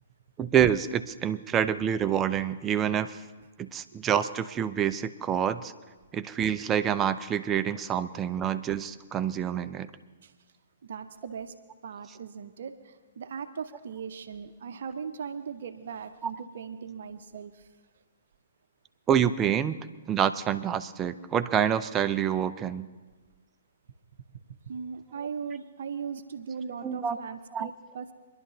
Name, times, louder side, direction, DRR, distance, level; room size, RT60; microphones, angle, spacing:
voice 1, 0.4-3.2 3.6-5.7 6.1-9.9 16.2-16.3 19.1-19.8 20.1-22.9 26.8-27.2 27.5-27.7, right 9 dB, 20° right, 11 dB, 0.5 m, -27 dB
voice 2, 10.8-11.5 11.8-17.7 24.7-28.1, right 6 dB, 60° right, 9 dB, 0.7 m, -39 dB
25.5 x 11.5 x 2.8 m, 1.3 s
figure-of-eight pair, 120°, 0 cm